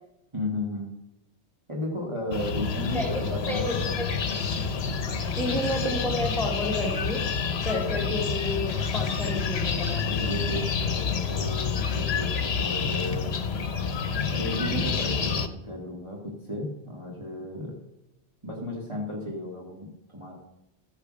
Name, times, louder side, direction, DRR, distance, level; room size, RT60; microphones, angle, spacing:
voice 1, 0.3-0.9 1.7-3.9 7.7-7.8 10.0-13.3 14.3-17.7 18.4-20.4, left 1 dB, 25° right, -3 dB, 2.3 m, -34 dB
sound 1, 2.3-15.5, left 5 dB, 65° left, 1.1 m, -28 dB
voice 2, 2.9-4.1 4.3-4.5 5.4-7.2 7.6-10.1 14.7-14.9, left 1 dB, ahead, 0 dB, 3.2 m, -30 dB
13.5 x 8.7 x 6.3 m, 0.88 s
omnidirectional pair, 1.2 m